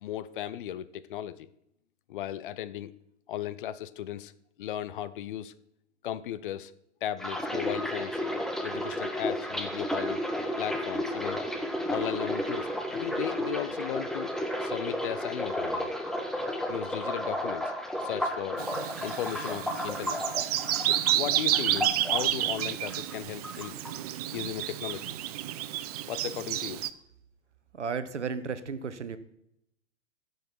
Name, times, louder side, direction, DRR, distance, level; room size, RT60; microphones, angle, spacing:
voice 1, 0.0-1.5 2.1-2.9 3.3-4.3 4.6-5.5 6.0-6.7 7.0-8.2 8.6-10.2 10.6-11.4 11.9-14.3 14.6-15.9 16.7-17.7 18.0-18.6 19.0-20.2 20.8-23.8 24.3-25.2 26.1-26.8, left 11 dB, 45° left, 15 dB, 0.7 m, -36 dB
sound 1, 7.2-23.2 23.4-24.4 24.6-25.0, left 1 dB, ahead, 0.9 m, -33 dB
Bird vocalization bird call bird song, 18.6-26.9, right 13 dB, 35° right, 0.5 m, -30 dB
voice 2, 27.7-29.2, right 5 dB, 75° right, 12 dB, 1.0 m, -34 dB
15.0 x 6.5 x 4.5 m, 0.78 s
figure-of-eight pair, 105°, 35 cm